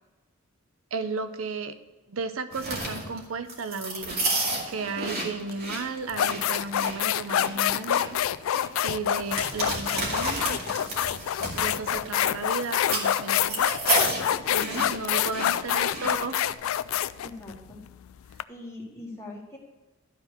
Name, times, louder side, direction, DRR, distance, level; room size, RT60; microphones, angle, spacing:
voice 1, 0.9-1.8 2.1-4.2 4.7-8.2 8.4-8.5 8.8-10.6 11.5-13.7 14.5-16.5, right 4 dB, 80° right, 10 dB, 0.6 m, -34 dB
sound 1, 2.5-16.5, right 2 dB, 50° right, 2.4 m, -32 dB
sound 2, 5.5-5.6 6.1-18.4, left 10 dB, 75° left, 0.3 m, -26 dB
voice 2, 17.2-17.8 18.5-19.6, left 2 dB, 15° left, -3 dB, 2.1 m, -42 dB
12.0 x 4.4 x 6.5 m, 1.2 s
head